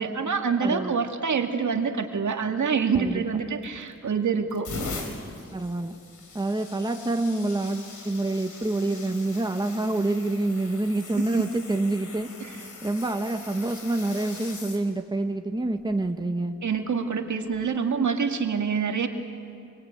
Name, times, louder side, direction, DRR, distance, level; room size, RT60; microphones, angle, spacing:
voice 1, 0.0-4.7 11.3-11.4 12.4-12.5 16.6-19.1, right 5 dB, 75° right, 4 dB, 2.1 m, -26 dB
voice 2, 0.6-1.0 2.9-3.2 5.5-6.0 6.3-12.3 12.8-16.5, right 2 dB, 15° right, 5 dB, 1.4 m, -27 dB
sound 1, 3.6-4.0 4.5-14.8 15.7-15.9 17.5-17.6, left 3 dB, 85° left, 3.7 m, -41 dB
26.0 x 24.0 x 8.8 m, 2.5 s
wide cardioid pair, 105°, 30 cm